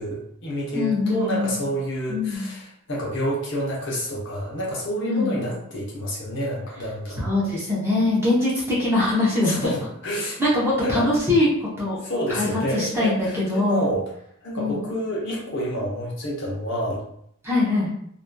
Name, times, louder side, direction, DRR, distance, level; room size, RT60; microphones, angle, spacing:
voice 1, 0.0-7.3 9.4-10.5 10.8-11.1 12.0-14.1 14.4-17.0, equal, 55° left, -4 dB, 0.8 m, -28 dB
voice 2, 0.7-1.5 2.1-2.5 5.0-5.5 7.2-9.7 10.4-12.0 12.3-13.9 14.6-14.8 17.4-17.9, left 2 dB, 10° right, -7 dB, 0.7 m, -22 dB
2.8 x 2.4 x 2.2 m, 0.70 s
head